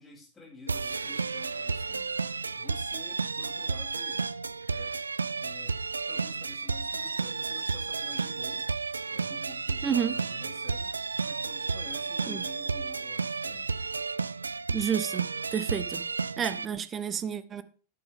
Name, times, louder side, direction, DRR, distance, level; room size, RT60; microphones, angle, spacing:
voice 1, 0.0-2.2 2.5-4.3 4.7-5.0 5.4-8.7 9.1-10.9 11.2-13.8, left 3 dB, 15° left, 7.3 m, -50 dB
sound 1, 0.7-16.6, right 4 dB, 75° right, 0.4 m, -32 dB
voice 2, 9.8-10.1 12.3-12.4 14.7-15.2 15.5-16.0 16.4-17.6, right 8 dB, 25° right, 1.1 m, -30 dB
12.0 x 11.0 x 3.6 m
figure-of-eight pair, 90°, 0 cm